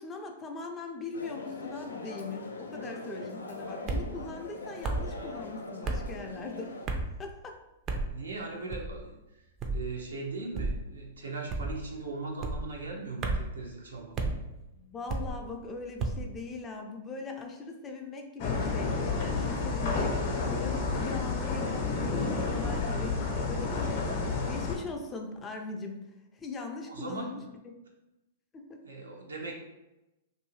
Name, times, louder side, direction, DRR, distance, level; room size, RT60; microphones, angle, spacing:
voice 1, 0.0-6.7 7.2-7.6 14.7-20.2 20.5-24.1 24.5-26.0 26.4-27.4 27.6-27.7 28.5-28.8, left 4 dB, 20° left, 3 dB, 0.5 m, -40 dB
sound 1, 1.1-6.9, left 2 dB, 90° left, 0.4 m, -42 dB
sound 2, 3.9-4.1 4.8-5.1 5.8-6.1 6.9-7.2 7.9-8.1 8.7-9.0 9.6-9.9 10.5-10.8 11.5-11.8 12.4-12.7 13.2-13.5 14.2-14.4 15.1-15.4 16.0-16.3, right 3 dB, 30° right, 0.4 m, -32 dB
voice 2, 8.1-9.2 9.7-14.1 26.9-27.3 28.8-29.5, right 3 dB, 85° right, -1 dB, 0.7 m, -39 dB
sound 3, 18.4-24.7, left 4 dB, 50° left, 0.7 m, -30 dB
2.7 x 2.6 x 3.1 m, 0.97 s
hypercardioid pair, 110°, 0 cm